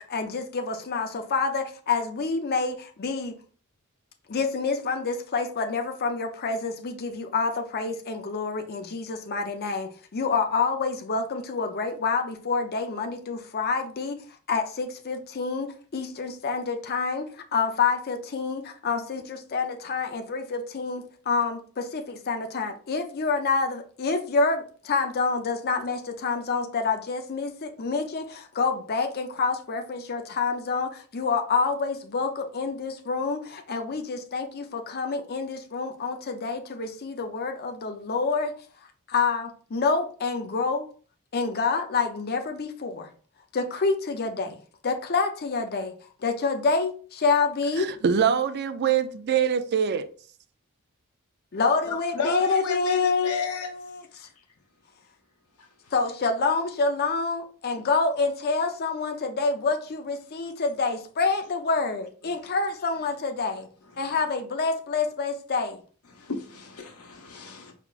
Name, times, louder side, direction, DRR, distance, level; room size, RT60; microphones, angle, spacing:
voice 1, 0.0-3.4 4.3-14.2 14.5-38.5 39.1-40.9 41.3-43.1 43.5-45.9 46.2-47.9 51.5-54.3 55.9-63.7 64.0-65.8, left 4 dB, 45° left, 0.6 m, -27 dB
voice 2, 47.8-50.1, right 7 dB, 50° right, 0.4 m, -24 dB
voice 3, 52.1-53.7 55.8-55.9 63.9-64.1 66.1-67.7, left 4 dB, 85° left, 1.0 m, -32 dB
4.6 x 3.6 x 2.4 m
head